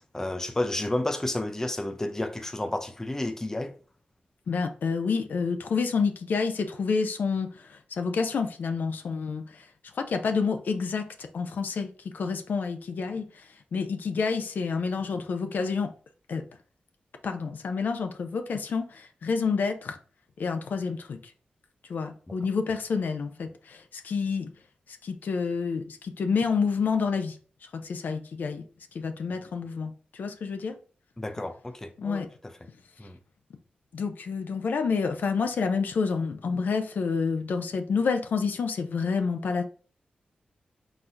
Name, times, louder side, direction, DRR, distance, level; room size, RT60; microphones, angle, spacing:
voice 1, 0.0-3.7 31.2-32.3 33.0-33.2, left 1 dB, 15° left, 0.5 m, -31 dB
voice 2, 4.5-9.7 9.9-15.9 16.3-16.4 17.2-20.0 20.4-21.3 21.9-24.5 24.9-28.7 28.9-30.8 32.0-32.3 33.9-39.6, left 5 dB, 75° left, 0.5 m, -29 dB
4.5 x 4.0 x 2.6 m
wide cardioid pair, 95°, 3 cm